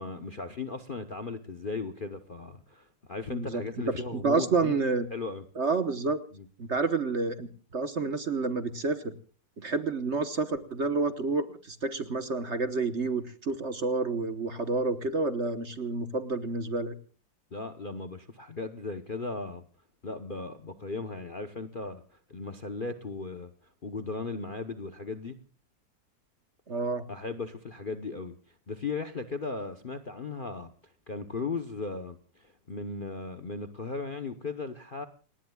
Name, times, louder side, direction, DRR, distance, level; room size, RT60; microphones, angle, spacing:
voice 1, 0.0-4.8 5.1-5.4 6.3-6.5 17.5-19.6 20.0-22.0 22.3-23.5 23.8-25.4 27.1-28.3 28.7-30.7 31.1-35.1, left 4 dB, 40° left, 0.8 m, -37 dB
voice 2, 3.3-5.1 5.6-6.2 6.6-7.5 7.7-9.1 9.6-16.9 26.7-27.0, right 4 dB, 45° right, 1.2 m, -29 dB
29.5 x 19.0 x 2.3 m
omnidirectional pair, 2.0 m